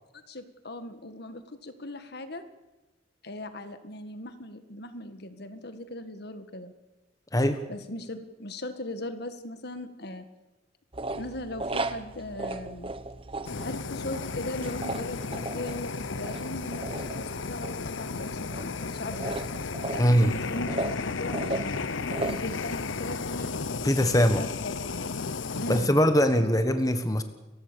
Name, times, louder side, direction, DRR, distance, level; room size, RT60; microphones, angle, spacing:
voice 1, 0.1-2.4 3.2-6.7 7.7-10.3 11.1-13.0 13.6-19.4 19.9-21.8 22.2-23.5 24.2-25.9 26.3-26.5, left 1 dB, 55° left, 10 dB, 1.8 m, -39 dB
voice 2, 7.3-7.6 20.0-20.3 23.8-24.4 25.7-27.2, equal, 20° left, 8 dB, 1.4 m, -22 dB
sound 1, 10.9-25.1, right 2 dB, 30° right, 1.1 m, -38 dB
Fire, 13.4-25.9, left 4 dB, 85° left, 0.9 m, -34 dB
29.0 x 15.5 x 7.0 m, 1.1 s
head